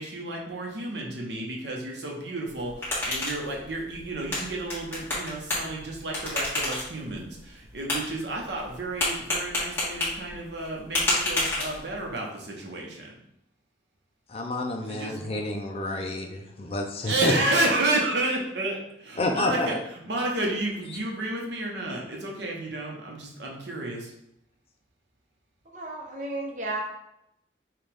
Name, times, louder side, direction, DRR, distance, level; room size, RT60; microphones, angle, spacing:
voice 1, 0.0-13.1 14.8-15.3 17.0-24.1, right 2 dB, 75° right, -1 dB, 1.0 m, -31 dB
sound 1, 2.5-12.1, left 2 dB, 15° left, 1.6 m, -31 dB
voice 2, 14.3-17.3 19.2-19.8, left 2 dB, 35° left, 2 dB, 0.5 m, -29 dB
voice 3, 25.7-26.8, right 2 dB, 45° right, 0 dB, 0.8 m, -33 dB
5.7 x 2.5 x 3.4 m, 0.81 s
head